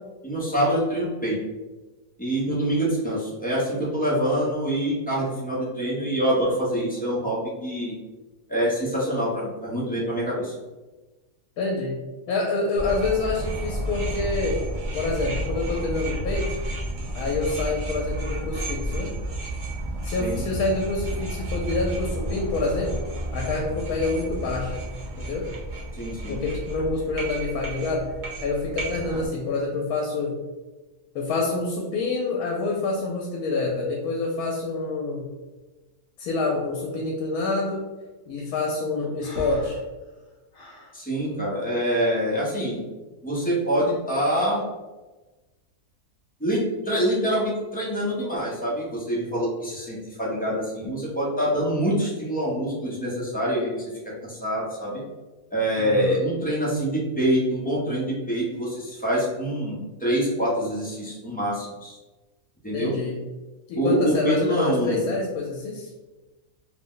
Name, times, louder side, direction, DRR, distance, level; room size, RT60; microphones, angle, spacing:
voice 1, 0.2-1.4 2.2-7.9 8.5-10.5 20.2-20.5 26.0-26.4 40.9-42.8 43.2-44.6 46.4-53.8 54.2-55.0 55.5-62.0 62.6-62.9 63.7-65.0, equal, 15° left, -7 dB, 0.3 m, -25 dB
voice 2, 11.6-14.6 14.9-16.6 17.1-19.1 20.0-22.9 23.3-24.8 25.2-25.5 26.3-28.1 28.4-30.4 31.1-35.3 36.2-37.8 38.3-39.8 55.8-56.2 62.7-63.2 63.7-65.9, left 3 dB, 80° left, -1 dB, 1.0 m, -27 dB
sound 1, 12.8-29.3, right 1 dB, 60° right, 0.5 m, -31 dB
Breathing, 39.2-40.9, left 1 dB, 50° left, 1.2 m, -39 dB
2.8 x 2.0 x 3.7 m, 1.2 s
omnidirectional pair, 1.6 m